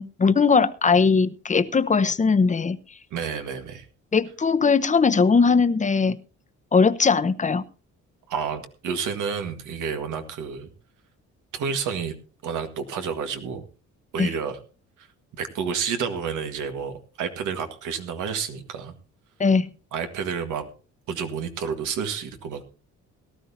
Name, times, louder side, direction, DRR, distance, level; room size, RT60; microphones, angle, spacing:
voice 1, 0.0-2.8 4.1-6.2 6.7-7.6 14.2-14.3 19.4-19.7, left 5 dB, 25° left, 12 dB, 0.8 m, -20 dB
voice 2, 3.1-3.8 8.3-10.7 11.5-12.2 12.4-13.6 14.1-14.6 15.4-18.9 19.9-20.7 21.1-22.6, right 6 dB, 80° right, 7 dB, 1.8 m, -30 dB
18.0 x 13.0 x 2.8 m, 0.35 s
cardioid pair, 90°, 30 cm